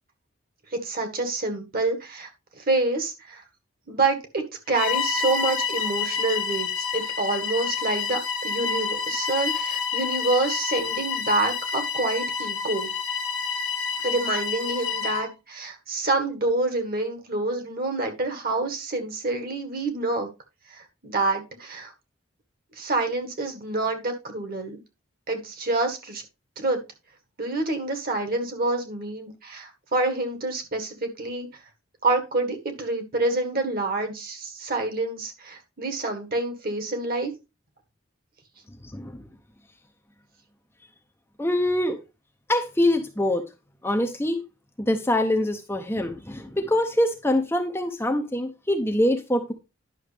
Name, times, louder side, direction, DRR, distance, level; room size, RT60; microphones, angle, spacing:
voice 1, 0.7-3.4 3.9-12.9 14.0-20.3 20.7-21.9 22.7-24.8 25.3-26.2 26.6-26.8 27.4-31.5 32.0-37.3, right 2 dB, 45° right, 1.6 m, -27 dB
Bowed string instrument, 4.7-15.3, left 6 dB, 85° left, 1.3 m, -28 dB
voice 2, 38.8-39.2 41.4-42.0 42.5-43.5 43.8-44.4 44.8-49.5, left 1 dB, 10° left, 0.7 m, -24 dB
11.0 x 6.2 x 3.4 m
head